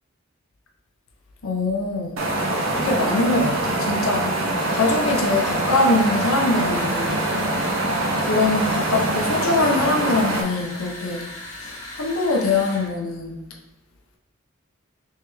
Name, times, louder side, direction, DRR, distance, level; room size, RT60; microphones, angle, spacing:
voice 1, 1.4-2.2 2.7-4.3 4.7-7.2 8.2-11.3 11.6-13.4, left 2 dB, 85° left, 1 dB, 0.6 m, -23 dB
sound 1, 2.2-10.4, right 1 dB, 75° right, 0.6 m, -24 dB
sound 2, 4.5-12.9, left 1 dB, 35° left, 1.4 m, -38 dB
3.3 x 3.2 x 3.3 m, 0.89 s
head